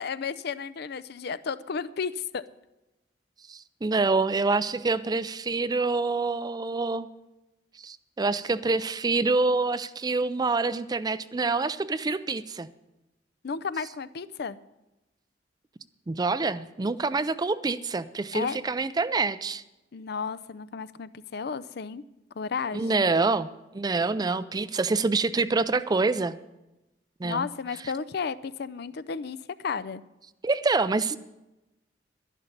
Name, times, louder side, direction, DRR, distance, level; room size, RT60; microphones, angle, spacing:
voice 1, 0.0-2.4 13.4-14.6 18.3-18.6 19.9-22.0 22.4-23.1 27.2-29.4 29.6-30.0, left 5 dB, 60° left, 16 dB, 0.5 m, -33 dB
voice 2, 3.5-7.1 7.8-12.7 16.1-19.6 22.7-23.5 23.7-26.4 27.2-27.5 30.4-31.2, right 3 dB, 20° right, 15 dB, 0.4 m, -26 dB
11.5 x 11.0 x 6.7 m, 0.98 s
head